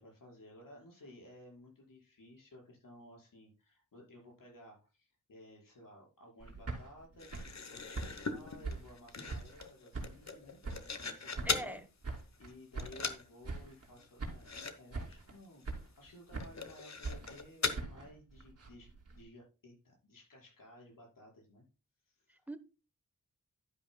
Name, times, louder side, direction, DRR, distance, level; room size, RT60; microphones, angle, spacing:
voice 1, 0.0-10.6 11.0-11.8 12.1-21.6 22.0-22.5, left 1 dB, 80° left, 5.5 m, -56 dB
sound 1, 6.4-9.7 9.9-11.1 11.4-13.2 13.4-13.9 14.2-14.7 14.9-15.4 15.6-16.7 17.0-19.2, right 3 dB, 45° right, 2.9 m, -43 dB
sound 2, 7.2-11.8 12.2-12.5 12.8-13.3 13.6-13.7 14.0-14.1 14.4-14.8 15.0-15.1 15.6-15.7 16.4-17.8, left 4 dB, 55° left, 1.2 m, -39 dB
voice 2, 11.4-11.9 22.3-22.6, right 1 dB, 5° right, 1.0 m, -42 dB
11.0 x 10.5 x 2.3 m
wide cardioid pair, 110°, 33 cm